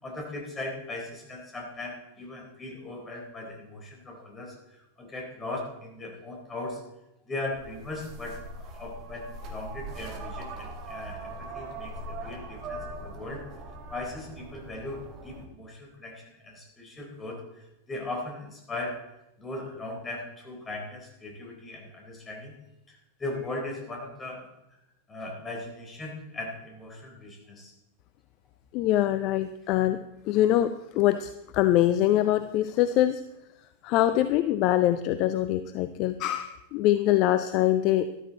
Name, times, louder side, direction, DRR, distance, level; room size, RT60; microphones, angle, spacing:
voice 1, 0.0-6.8 7.3-13.4 13.9-19.0 19.4-22.6 22.9-24.5 25.1-27.7, left 2 dB, 15° left, 0 dB, 4.1 m, -38 dB
sound 1, 7.5-15.5, right 2 dB, 35° right, 1.9 m, -41 dB
voice 2, 28.7-30.0 30.3-33.2 33.8-38.1, left 13 dB, 40° left, 12 dB, 0.5 m, -24 dB
13.5 x 12.5 x 4.1 m, 0.92 s
figure-of-eight pair, 90°, 0 cm